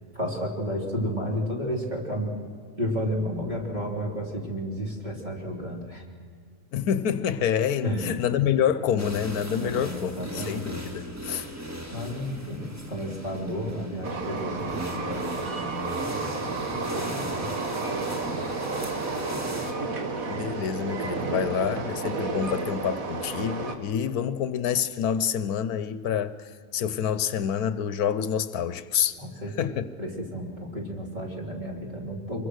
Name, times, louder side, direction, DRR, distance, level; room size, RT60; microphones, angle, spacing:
voice 1, 0.1-2.3 2.8-6.0 7.8-8.1 9.6-10.8 11.9-17.5 29.2-32.5, equal, 30° right, 3.5 m, -32 dB
voice 2, 6.7-11.5 20.3-26.4 26.7-29.2 29.6-29.9, left 8 dB, 75° left, 1.2 m, -27 dB
sound 1, 9.0-19.7, right 1 dB, 10° right, 1.7 m, -37 dB
Train, 14.0-23.8, right 3 dB, 65° right, 2.0 m, -31 dB
25.0 x 22.5 x 6.4 m
omnidirectional pair, 1.6 m